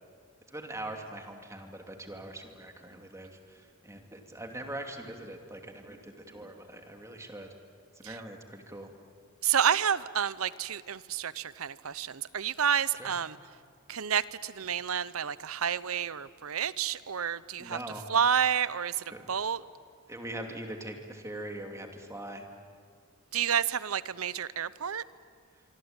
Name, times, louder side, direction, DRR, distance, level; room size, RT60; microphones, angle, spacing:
voice 1, 0.5-7.5 8.0-8.9 13.0-13.1 17.6-18.1 19.1-19.3 20.1-22.4, right 1 dB, 15° right, 3 dB, 2.7 m, -42 dB
voice 2, 9.4-13.4 13.9-17.8 18.1-19.6 23.3-25.0, right 8 dB, 75° right, 17 dB, 0.8 m, -29 dB
25.0 x 25.0 x 9.0 m, 2.1 s
head